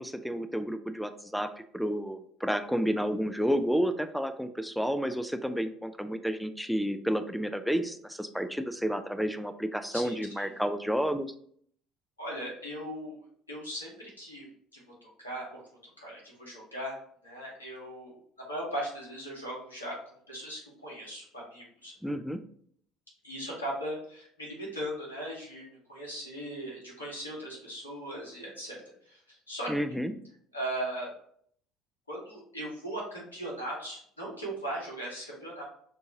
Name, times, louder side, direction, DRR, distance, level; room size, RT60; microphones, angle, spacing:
voice 1, 0.0-11.3 22.0-22.4 29.7-30.1, equal, ahead, 10 dB, 0.4 m, -31 dB
voice 2, 9.9-10.5 12.2-13.2 13.5-14.4 14.7-15.6 16.0-17.0 17.2-19.9 20.3-22.1 23.2-28.8 29.1-29.2 29.5-29.7 30.5-31.1 32.1-35.6, right 1 dB, 90° left, -3 dB, 1.5 m, -38 dB
6.2 x 2.8 x 2.8 m, 0.63 s
figure-of-eight pair, 60°, 0 cm